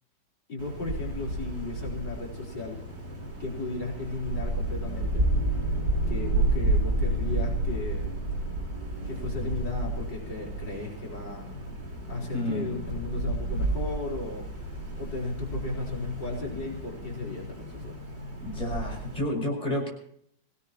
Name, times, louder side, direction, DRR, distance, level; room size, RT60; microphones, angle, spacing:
voice 1, 0.5-2.8 3.4-5.3 6.1-8.1 9.1-11.5 12.1-14.5 15.0-18.0, left 2 dB, 70° left, -3 dB, 4.7 m, -35 dB
Wind, 0.6-19.2, right 1 dB, 70° right, 5.0 m, -31 dB
voice 2, 12.3-12.6 18.4-19.9, left 1 dB, 20° left, 1 dB, 6.2 m, -30 dB
26.5 x 17.5 x 2.9 m, 0.67 s
omnidirectional pair, 2.0 m